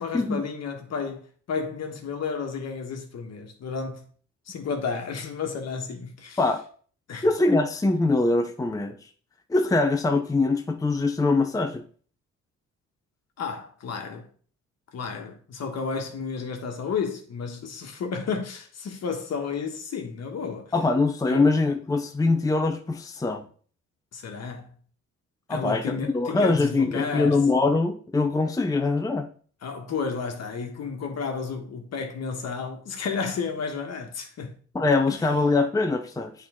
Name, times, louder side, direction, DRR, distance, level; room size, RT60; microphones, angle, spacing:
voice 1, 0.0-4.0 4.5-6.4 7.1-7.3 13.4-14.3 14.9-20.7 21.3-21.5 24.1-24.7 25.5-27.4 29.6-34.6 35.1-35.2, left 5 dB, 55° left, 1.4 m, -32 dB
voice 2, 7.2-9.0 9.5-11.8 20.7-23.5 25.5-29.3 34.7-36.3, left 3 dB, 10° left, 0.6 m, -23 dB
8.7 x 3.9 x 3.6 m
cardioid pair, 90°, 30 cm